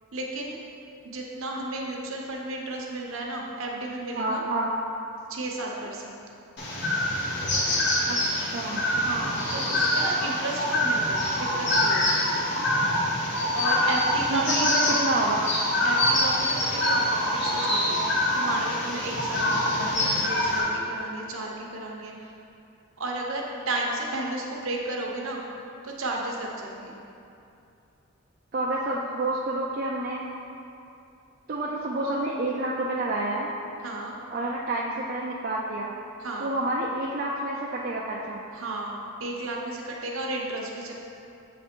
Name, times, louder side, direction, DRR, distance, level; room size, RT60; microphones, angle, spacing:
voice 1, 0.1-0.6 1.0-4.4 5.3-6.2 9.0-12.1 13.5-14.7 15.8-22.3 23.0-25.4 25.8-26.9 33.8-34.1 36.2-36.5 38.5-40.9, right 2 dB, 70° right, -1 dB, 0.8 m, -33 dB
voice 2, 4.2-4.7 8.1-9.0 14.3-15.5 19.8-19.9 28.5-30.3 31.5-33.5 34.3-35.9 36.4-38.4, right 2 dB, 40° right, -4 dB, 0.4 m, -29 dB
sound 1, 6.6-20.6, left 1 dB, 50° left, 1.0 m, -25 dB
7.4 x 3.3 x 4.4 m, 2.6 s
head